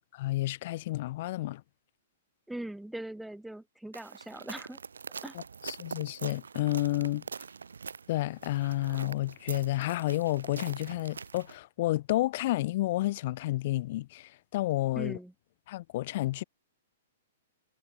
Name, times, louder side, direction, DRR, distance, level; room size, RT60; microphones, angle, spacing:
voice 1, 0.1-1.6 5.3-7.2 8.1-15.2 15.7-16.4, left 16 dB, 50° left, 0.4 m, -30 dB
voice 2, 2.5-4.8 5.2-5.4 14.9-15.3, right 1 dB, 5° right, 1.1 m, -40 dB
sound 1, 3.9-11.6, right 5 dB, 80° right, 1.7 m, -44 dB
hypercardioid pair, 115°, 0 cm